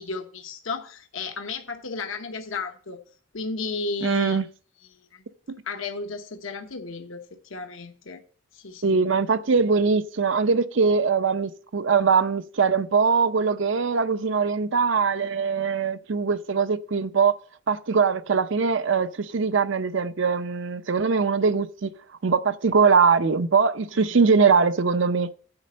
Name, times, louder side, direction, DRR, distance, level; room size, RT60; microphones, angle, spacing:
voice 1, 0.0-3.0 3.3-4.4 5.1-5.2 5.6-8.2 8.5-9.0 24.0-24.2, left 4 dB, 75° left, 0.9 m, -34 dB
voice 2, 4.0-4.5 8.8-17.3 17.7-21.9 22.2-25.3, right 5 dB, 65° right, 0.6 m, -22 dB
9.7 x 4.2 x 7.5 m
head